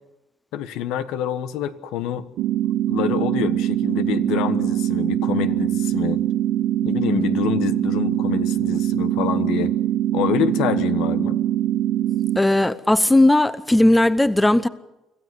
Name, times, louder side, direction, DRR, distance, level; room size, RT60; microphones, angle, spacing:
voice 1, 0.5-2.3 2.9-6.2 6.8-9.7 10.1-11.4, left 10 dB, 85° left, 1.4 m, -26 dB
sound 1, 2.4-12.4, right 12 dB, 75° right, 0.8 m, -22 dB
voice 2, 12.4-14.7, left 1 dB, 10° left, 0.9 m, -17 dB
26.0 x 15.5 x 9.6 m
cardioid pair, 125°, 0 cm